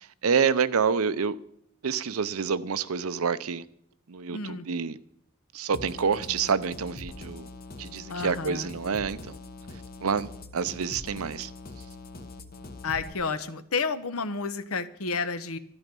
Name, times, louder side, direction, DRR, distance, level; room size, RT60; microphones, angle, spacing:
voice 1, 0.2-1.4 1.8-3.6 4.1-5.0 5.5-7.5 7.8-9.4 10.0-11.5, right 6 dB, 85° right, 0.7 m, -27 dB
voice 2, 4.3-4.7 8.1-8.7 12.8-15.6, left 4 dB, 80° left, 0.9 m, -31 dB
sound 1, 5.7-13.1, left 2 dB, 45° left, 1.0 m, -43 dB
13.0 x 12.0 x 5.3 m
head